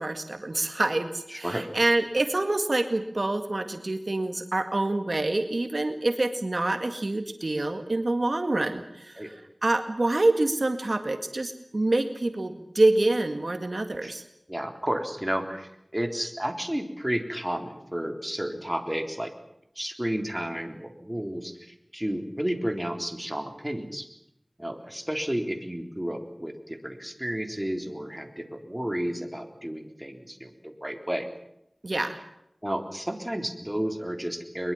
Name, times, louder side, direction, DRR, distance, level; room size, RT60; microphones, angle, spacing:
voice 1, 0.0-14.2 31.8-32.2, right 2 dB, 60° right, 8 dB, 2.0 m, -26 dB
voice 2, 1.3-1.7 9.2-9.3 14.0-14.1 14.5-19.3 19.8-24.1 24.6-31.3 32.6-34.7, equal, 15° right, 6 dB, 3.7 m, -32 dB
22.5 x 22.0 x 7.4 m, 0.80 s
wide cardioid pair, 45°, 0 cm